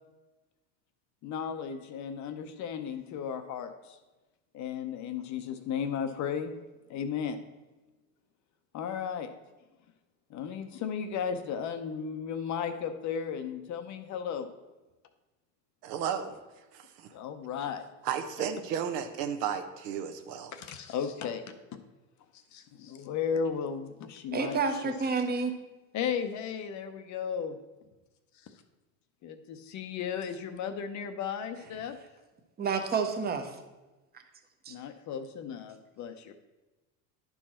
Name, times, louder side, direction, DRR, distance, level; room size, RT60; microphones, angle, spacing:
voice 1, 1.2-4.0 4.5-6.5 6.9-7.4 8.7-9.3 10.3-14.5 17.1-17.8 18.4-18.5 20.5-21.4 22.5-25.2 25.9-27.6 28.4-28.5 29.2-32.0 34.7-36.3, left 7 dB, 35° left, 8 dB, 0.7 m, -35 dB
voice 2, 15.8-16.4 16.7-17.1 18.0-20.5, right 8 dB, 75° right, 8 dB, 1.0 m, -33 dB
voice 3, 24.3-25.5 32.6-33.5 34.7-34.8, right 5 dB, 20° right, 6 dB, 0.8 m, -29 dB
10.5 x 4.7 x 4.3 m, 1.1 s
supercardioid pair, 120°, 48 cm